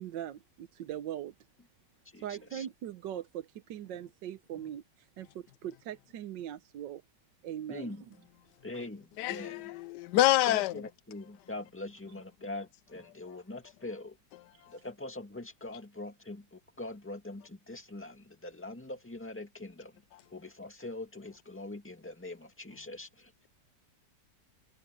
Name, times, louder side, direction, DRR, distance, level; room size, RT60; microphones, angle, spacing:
voice 1, 0.0-1.3 2.2-7.0 7.4-8.0 14.6-14.7, right 10 dB, 80° right, 1.5 m, -41 dB
voice 2, 2.1-2.7 7.7-8.0 8.6-9.7 10.5-14.2 14.7-20.0 20.3-23.3, left 2 dB, 5° left, 2.1 m, -43 dB
voice 3, 9.2-10.7, left 15 dB, 75° left, 1.1 m, -26 dB
omnidirectional pair, 1.9 m